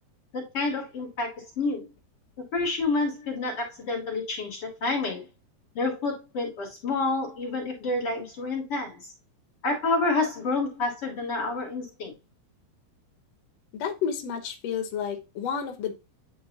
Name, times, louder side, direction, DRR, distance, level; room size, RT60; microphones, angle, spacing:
voice 1, 0.3-1.9 2.5-5.2 5.7-9.0 9.6-12.1, left 3 dB, 35° left, -4 dB, 3.5 m, -28 dB
voice 2, 13.7-15.9, left 7 dB, 85° left, 4 dB, 1.4 m, -31 dB
10.5 x 4.0 x 2.9 m, 0.26 s
omnidirectional pair, 4.9 m